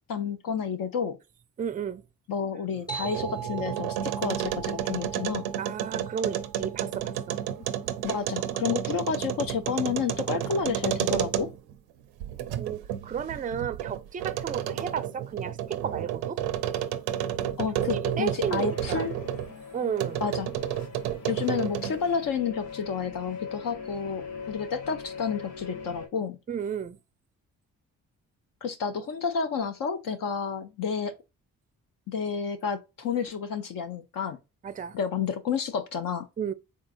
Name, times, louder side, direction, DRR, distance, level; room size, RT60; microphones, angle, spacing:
voice 1, 0.1-1.2 2.3-5.5 8.0-11.5 17.6-19.1 20.2-20.5 21.3-26.4 28.6-31.2 32.1-34.4 34.9-36.3, left 6 dB, 60° left, 0.7 m, -30 dB
voice 2, 1.6-2.0 5.6-7.4 12.6-16.4 18.1-19.1 19.7-20.2 26.5-27.0 34.6-35.0 36.4-36.5, right 7 dB, 20° right, 0.4 m, -33 dB
sound 1, 2.8-11.7 12.2-19.5 20.0-22.1, right 10 dB, 85° right, 0.5 m, -31 dB
sound 2, 2.9-7.9, right 7 dB, 10° left, 0.9 m, -41 dB
sound 3, 18.4-26.1, left 5 dB, 90° left, 0.8 m, -41 dB
3.7 x 3.6 x 2.5 m
hypercardioid pair, 40°, 38 cm